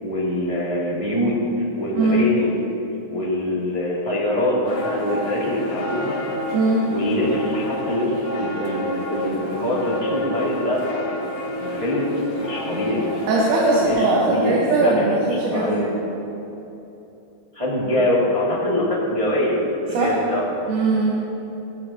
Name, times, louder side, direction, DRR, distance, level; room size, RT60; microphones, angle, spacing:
voice 1, 0.0-1.4 1.8-2.5 3.1-6.2 6.9-11.2 11.5-13.1 13.8-15.9 17.5-20.4, left 1 dB, 10° right, -7 dB, 1.8 m, -24 dB
voice 2, 1.9-2.3 6.5-6.9 13.3-15.9 19.9-20.2 20.7-21.2, right 2 dB, 80° right, -4 dB, 2.9 m, -20 dB
sound 1, 4.6-13.9, left 1 dB, 80° left, 3.3 m, -30 dB
17.5 x 14.0 x 2.9 m, 3.0 s
omnidirectional pair, 3.5 m